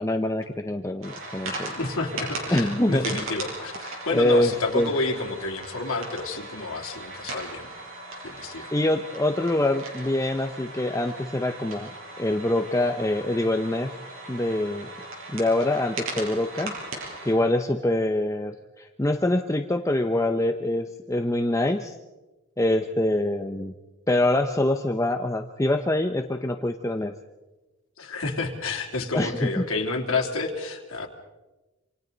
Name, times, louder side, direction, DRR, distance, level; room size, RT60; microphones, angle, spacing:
voice 1, 0.0-1.7 2.5-3.2 4.1-4.9 8.7-11.9 12.2-13.9 14.3-14.9 15.3-16.8 17.2-22.0 22.6-23.7 24.1-27.1 29.1-29.7, left 1 dB, 15° left, 5 dB, 0.7 m, -25 dB
sound 1, 1.0-17.3, right 2 dB, 70° right, 6.8 m, -38 dB
voice 2, 1.7-7.7 8.2-8.7 28.0-31.1, left 3 dB, 75° left, 1 dB, 3.1 m, -30 dB
27.5 x 27.0 x 4.0 m, 1.1 s
head